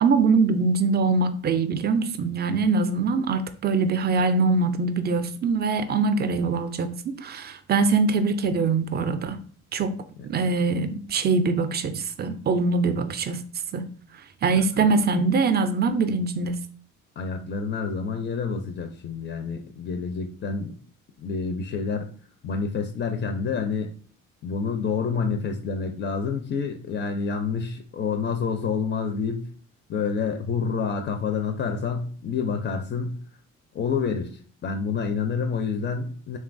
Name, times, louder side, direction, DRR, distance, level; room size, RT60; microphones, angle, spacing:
voice 1, 0.0-9.4 9.7-10.0 10.3-13.4 13.7-13.9 14.4-16.6, right 4 dB, 30° right, 0.4 m, -23 dB
voice 2, 14.6-14.9 17.2-20.7 21.2-22.1 22.4-23.9 24.4-29.5 29.9-33.1 33.7-36.4, left 5 dB, 35° left, 0.4 m, -28 dB
3.0 x 2.2 x 2.5 m
supercardioid pair, 60°, 33 cm